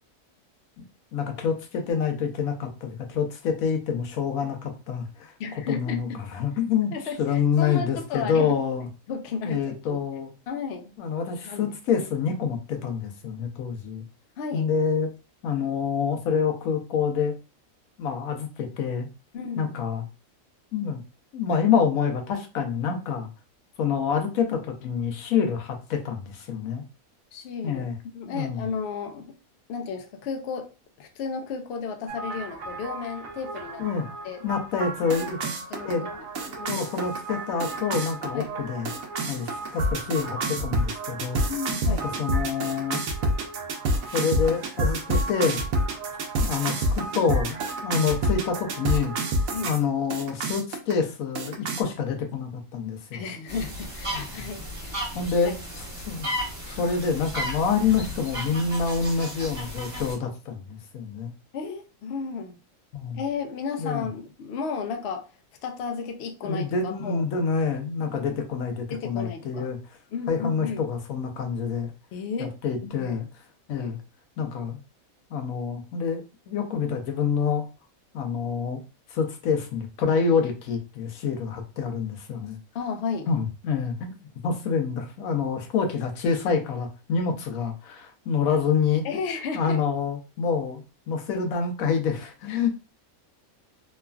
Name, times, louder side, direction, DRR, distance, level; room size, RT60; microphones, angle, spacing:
voice 1, 1.1-5.3 5.7-6.9 7.2-8.9 9.4-10.3 11.0-14.0 14.5-15.1 15.4-17.3 18.0-19.1 19.6-20.0 20.7-21.0 21.3-23.3 23.8-26.8 27.6-27.9 28.3-28.7 33.8-34.0 34.4-35.4 35.8-36.1 36.6-38.9 39.3-41.4 41.9-43.0 44.1-45.6 46.4-49.1 49.6-53.2 54.1-54.5 55.1-56.3 56.6-61.3 62.9-63.2 63.8-64.1 66.4-69.8 70.3-71.9 72.4-73.3 73.7-74.0 74.4-74.8 75.3-77.7 78.1-78.8 79.1-82.6 83.3-84.2 84.4-89.0 89.5-92.7, left 6 dB, 80° left, 1.0 m, -27 dB
voice 2, 5.4-6.0 6.9-8.6 9.1-10.0 10.5-10.9 11.4-11.7 14.4-14.7 19.3-19.7 27.3-27.9 28.1-29.3 29.7-30.7 31.0-33.8 34.2-34.4 35.7-35.9 38.3-38.5 41.5-42.1 49.5-49.7 53.1-55.0 55.4-55.5 61.5-62.6 63.1-65.3 65.6-67.2 68.9-69.7 70.1-70.8 72.1-72.5 72.8-73.1 82.7-83.3 89.0-89.8 92.5-92.7, left 5 dB, 65° left, 0.7 m, -33 dB
sound 1, 32.1-49.8 50.1-50.9 51.4-51.8, right 1 dB, 80° right, 1.0 m, -29 dB
sound 2, 53.5-60.1, equal, 25° right, 1.2 m, -34 dB
3.1 x 2.3 x 2.2 m
omnidirectional pair, 1.4 m